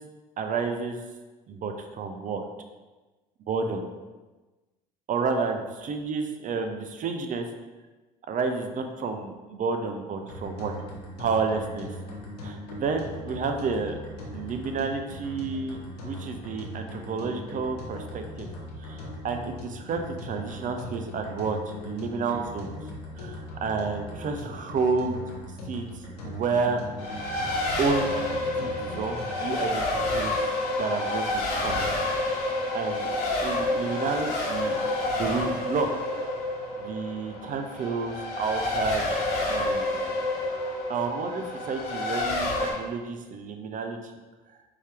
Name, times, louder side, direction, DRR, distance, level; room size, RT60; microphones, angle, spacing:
voice 1, 0.4-1.0 1.5-2.4 3.5-3.8 5.1-7.5 8.3-10.7 11.2-11.9 12.4-14.0 14.3-18.5 18.8-22.7 23.2-25.2 25.6-26.8 27.8-30.4 30.8-31.9 32.2-32.4 32.7-33.1 33.4-34.7 35.1-35.9 36.8-39.1 39.4-39.9 40.9-44.1, right 4 dB, 40° right, 5 dB, 0.6 m, -30 dB
sound 1, 10.3-29.5, left 1 dB, 85° left, 0.9 m, -40 dB
Race car auto racing, 27.0-42.7, left 2 dB, 65° left, 1.3 m, -29 dB
4.6 x 2.8 x 3.4 m, 1.2 s
hypercardioid pair, 60°, 20 cm